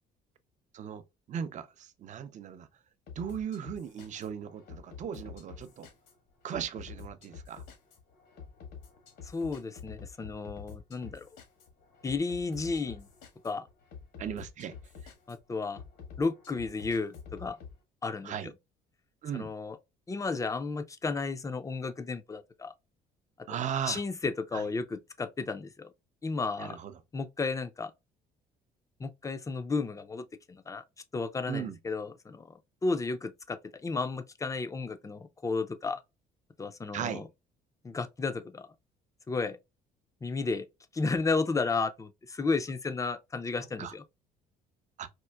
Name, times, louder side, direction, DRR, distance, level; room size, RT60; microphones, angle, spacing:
voice 1, 1.3-2.7 3.2-5.9 6.4-7.6 14.2-14.7 18.2-18.5 19.2-19.5 23.5-24.0 24.5-24.6 26.6-26.9 31.5-31.8 36.9-37.3 43.8-43.9 45.0-45.1, right 8 dB, 45° right, 0.5 m, -37 dB
sound 1, 3.1-17.8, left 6 dB, 75° left, 1.3 m, -48 dB
voice 2, 9.2-11.3 12.0-13.1 13.4-13.7 15.3-15.8 16.2-17.6 18.0-18.5 19.3-19.8 20.1-22.7 23.9-25.9 26.2-26.8 27.1-27.9 29.0-30.8 31.1-36.0 36.6-37.2 37.8-38.7 39.3-39.6 40.2-40.7 40.9-44.0, left 4 dB, 20° left, 0.5 m, -33 dB
4.4 x 2.5 x 2.2 m
cardioid pair, 110°, 17 cm